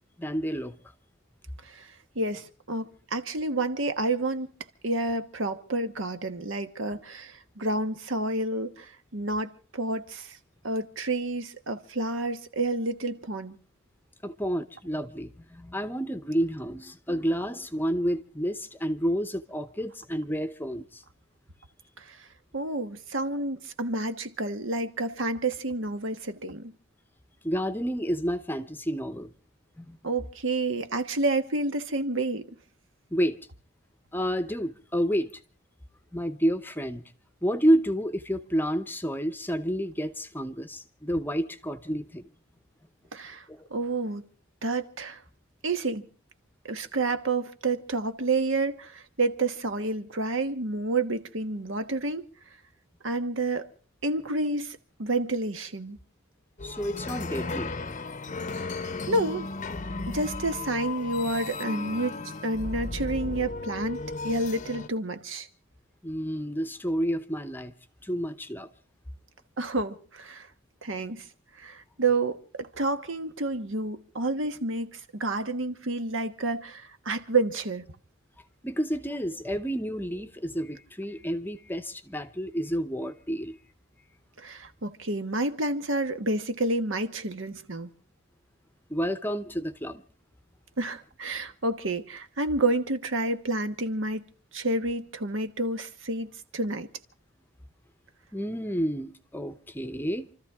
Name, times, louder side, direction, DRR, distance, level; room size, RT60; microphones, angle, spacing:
voice 1, 0.2-0.7 14.2-21.0 27.4-29.3 29.8-30.0 33.1-33.4 34.1-35.3 36.1-37.0 37.4-42.3 43.5-43.7 56.6-57.7 66.0-67.7 68.0-68.7 78.6-83.6 88.9-90.0 98.3-100.3, equal, 10° left, 0.8 m, -29 dB
voice 2, 2.1-4.5 4.8-10.4 10.6-13.6 22.0-22.3 22.5-26.7 30.0-32.5 43.1-43.4 43.7-44.2 44.6-45.2 45.6-46.1 46.7-52.2 53.0-53.7 54.0-56.0 59.1-59.5 60.1-62.2 62.4-65.5 69.6-70.5 70.8-71.3 71.6-77.9 84.4-87.9 90.8-94.2 94.5-96.9, right 2 dB, 65° right, 1.3 m, -29 dB
sound 1, 56.6-64.9, left 3 dB, 35° left, 0.8 m, -35 dB
28.5 x 14.0 x 3.6 m
head